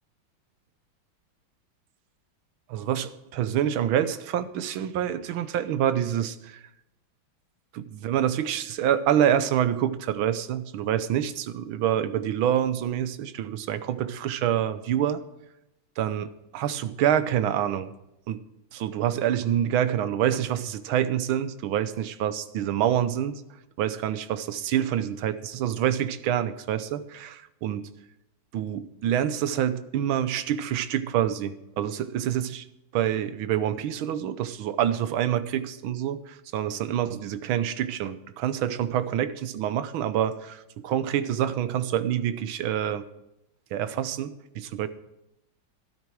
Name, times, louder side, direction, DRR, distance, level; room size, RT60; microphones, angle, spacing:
voice 1, 2.7-6.6 7.7-15.2 16.0-17.9 18.3-18.4 18.7-23.4 23.8-27.9 28.5-32.6 32.9-43.0 43.7-44.9, right 10 dB, 80° right, 13 dB, 1.6 m, -27 dB
13.0 x 12.0 x 4.8 m, 0.88 s
omnidirectional pair, 2.2 m